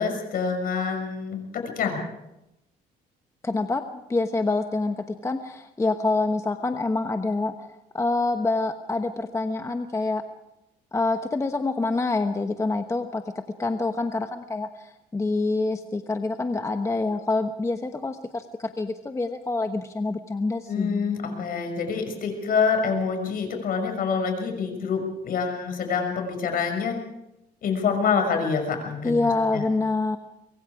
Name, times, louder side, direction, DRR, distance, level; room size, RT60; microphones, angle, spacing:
voice 1, 0.0-2.0 20.7-27.0 27.6-29.6, left 5 dB, 60° left, 5 dB, 6.3 m, -26 dB
voice 2, 3.4-3.8 4.1-10.2 10.9-21.1 29.0-30.2, left 3 dB, 15° left, 7 dB, 1.1 m, -26 dB
24.5 x 22.0 x 4.9 m, 0.88 s
cardioid pair, 110°, 17 cm